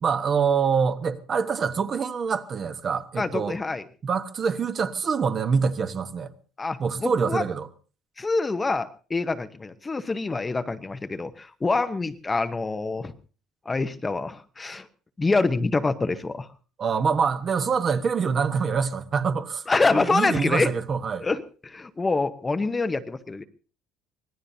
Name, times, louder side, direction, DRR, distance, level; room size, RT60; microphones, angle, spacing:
voice 1, 0.0-3.6 4.0-6.3 6.8-7.7 16.8-19.6 19.9-21.3, right 6 dB, 35° right, 1.1 m, -25 dB
voice 2, 3.2-3.9 6.6-7.4 8.2-13.1 13.7-14.9 15.2-16.5 19.7-20.7 21.2-23.4, left 3 dB, 15° left, 0.8 m, -26 dB
25.0 x 18.5 x 2.7 m
cardioid pair, 145°, 0 cm